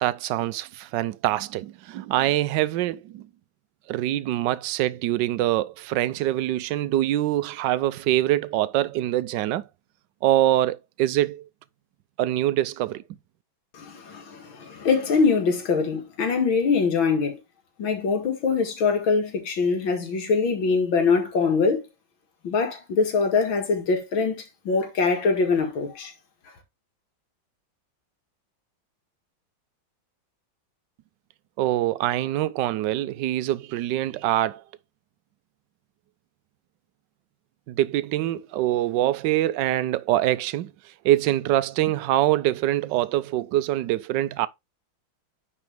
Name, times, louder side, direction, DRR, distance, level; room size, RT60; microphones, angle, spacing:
voice 1, 0.0-3.2 3.9-9.6 10.2-11.5 12.2-13.0 31.6-34.6 37.7-40.7 41.0-44.5, right 14 dB, 70° right, 1.2 m, -24 dB
voice 2, 13.7-17.4 17.8-21.8 22.4-26.1, left 4 dB, 80° left, 2.6 m, -23 dB
9.8 x 4.1 x 3.4 m
omnidirectional pair, 2.2 m